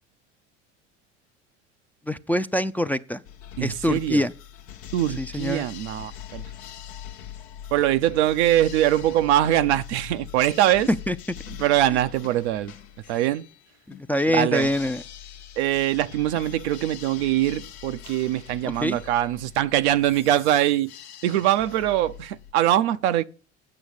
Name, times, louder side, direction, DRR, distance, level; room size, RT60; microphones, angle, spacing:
voice 1, 2.1-3.2 3.6-4.3 5.2-5.6 11.1-11.2 11.9-12.0 13.9-15.0 18.6-19.0, left 1 dB, 5° left, 0.4 m, -25 dB
sound 1, 3.2-22.5, left 10 dB, 75° left, 1.0 m, -42 dB
voice 2, 3.6-4.2 4.9-6.4 7.7-10.9 11.6-12.7 13.1-13.5 14.3-14.7 15.6-20.9 21.2-23.2, right 13 dB, 75° right, 0.6 m, -22 dB
8.7 x 6.2 x 7.9 m
hypercardioid pair, 75°, 34 cm